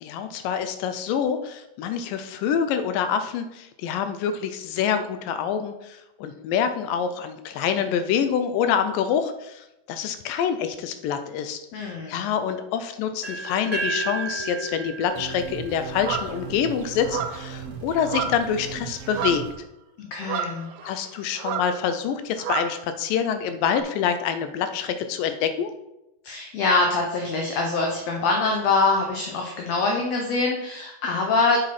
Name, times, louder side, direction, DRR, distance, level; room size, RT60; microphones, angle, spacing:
voice 1, 0.0-19.4 20.8-25.7, left 8 dB, 85° left, 9 dB, 2.3 m, -26 dB
voice 2, 11.7-12.2 20.0-20.7 26.2-31.6, left 3 dB, 70° left, 1 dB, 1.7 m, -24 dB
sound 1, 13.2-17.1, right 3 dB, 5° left, 2.7 m, -33 dB
sound 2, 15.1-19.5, right 7 dB, 70° right, 1.4 m, -38 dB
sound 3, 16.0-16.3 17.0-17.5 18.0-18.6 18.8-19.5 20.2-21.1 21.4-21.8 22.4-22.8 23.7-23.8, right 8 dB, 90° right, 2.3 m, -30 dB
7.2 x 6.6 x 4.2 m, 0.89 s
omnidirectional pair, 3.9 m